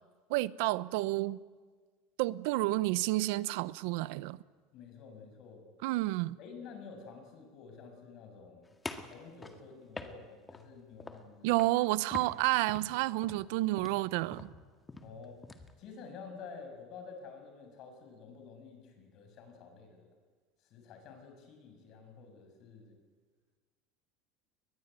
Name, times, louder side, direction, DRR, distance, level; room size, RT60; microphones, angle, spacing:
voice 1, 0.3-1.4 2.2-4.4 5.8-6.4 11.4-14.5, right 18 dB, 75° right, 0.7 m, -30 dB
voice 2, 4.7-5.7 6.4-8.7 9.1-11.6 15.0-15.4 15.8-20.1 20.7-23.0, left 5 dB, 50° left, 6.4 m, -50 dB
sound 1, 8.8-10.7 11.0-11.3 11.6-11.8 12.1-15.7, left 3 dB, 15° left, 1.9 m, -45 dB
22.5 x 20.5 x 9.1 m
supercardioid pair, 130°, 0 cm